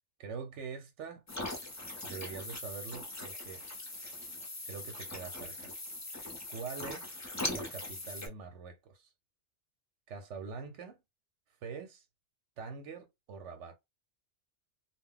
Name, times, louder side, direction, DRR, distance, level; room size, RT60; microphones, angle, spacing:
voice 1, 0.2-1.2 2.0-3.6 4.7-5.8 6.5-7.1 7.5-9.1 10.1-11.0 11.6-12.0 12.6-13.7, right 5 dB, 80° right, 0.9 m, -44 dB
sound 1, 1.3-8.3, left 1 dB, 20° left, 0.6 m, -41 dB
2.2 x 2.1 x 3.7 m
omnidirectional pair, 1.2 m